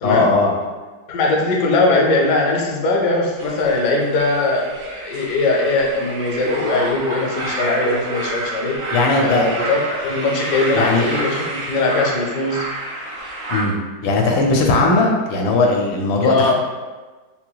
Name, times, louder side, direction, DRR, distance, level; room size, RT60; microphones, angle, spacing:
voice 1, 0.0-0.5 8.9-9.4 10.7-11.1 13.5-13.8 14.0-16.5, left 3 dB, 85° left, 0 dB, 1.4 m, -17 dB
voice 2, 1.1-8.8 9.2-12.6 16.2-16.5, left 2 dB, 65° left, -1 dB, 0.9 m, -20 dB
sound 1, 3.4-13.6, right 1 dB, 55° right, 1.0 m, -28 dB
5.7 x 2.2 x 2.3 m, 1.3 s
omnidirectional pair, 2.1 m